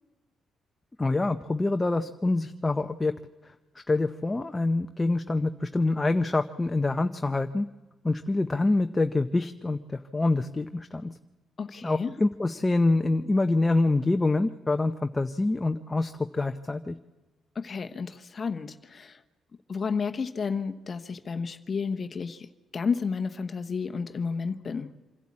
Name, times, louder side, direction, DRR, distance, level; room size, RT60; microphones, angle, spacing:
voice 1, 1.0-3.1 3.4-3.5 3.9-7.7 8.0-11.1 11.8-17.0, left 2 dB, 20° left, 7 dB, 0.7 m, -26 dB
voice 2, 11.6-12.1 17.5-19.2 19.7-24.9, left 5 dB, 40° left, 8 dB, 1.0 m, -31 dB
26.0 x 11.5 x 8.5 m, 1.2 s
cardioid pair, 90°, 0 cm